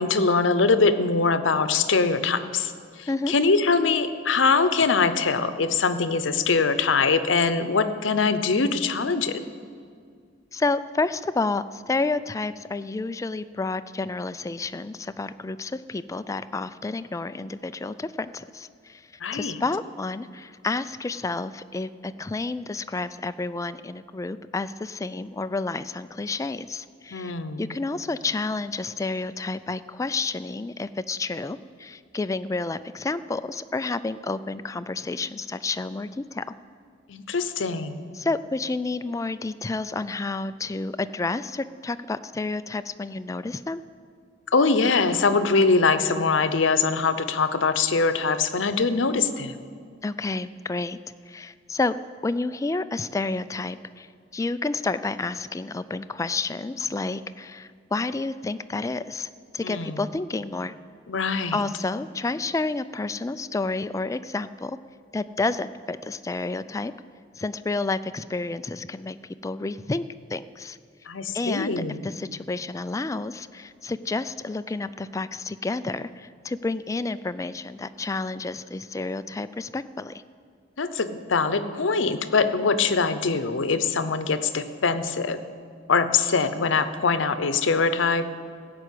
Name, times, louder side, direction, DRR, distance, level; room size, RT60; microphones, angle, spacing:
voice 1, 0.0-2.7 3.0-9.4 19.2-19.6 27.1-27.7 37.1-38.0 44.5-49.5 59.6-60.0 61.1-61.6 71.1-72.1 80.8-85.4 85.9-88.3, left 4 dB, 85° left, 11 dB, 0.7 m, -23 dB
voice 2, 10.5-19.0 19.3-36.4 38.1-43.8 50.0-51.0 51.3-52.0 52.2-54.1 54.3-60.7 61.5-64.8 65.1-66.9 67.3-69.2 69.4-70.0 70.3-70.8 71.3-80.2, left 3 dB, 15° left, 13 dB, 0.3 m, -30 dB
15.0 x 6.0 x 8.3 m, 2.2 s
head